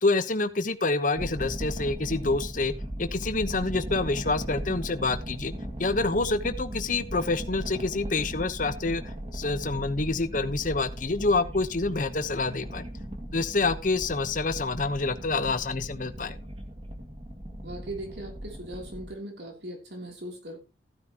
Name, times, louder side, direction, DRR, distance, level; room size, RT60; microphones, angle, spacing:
voice 1, 0.0-2.7 3.0-5.5 5.8-12.9 13.3-16.4, left 3 dB, 50° left, 10 dB, 1.1 m, -27 dB
sound 1, 1.2-19.1, equal, 35° right, 2.1 m, -37 dB
voice 2, 17.6-20.6, right 1 dB, 75° right, 2 dB, 3.2 m, -39 dB
15.0 x 9.8 x 3.0 m, 0.28 s
head